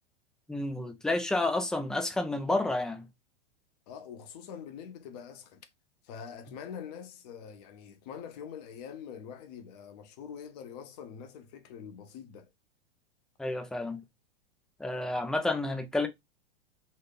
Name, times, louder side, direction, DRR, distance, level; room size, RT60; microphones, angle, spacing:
voice 1, 0.5-3.1 13.4-14.0 14.8-16.1, left 2 dB, ahead, 0.4 m, -30 dB
voice 2, 3.9-5.6 6.0-12.5, left 7 dB, 40° left, 0.9 m, -44 dB
4.2 x 2.6 x 3.8 m
figure-of-eight pair, 95°, 30 cm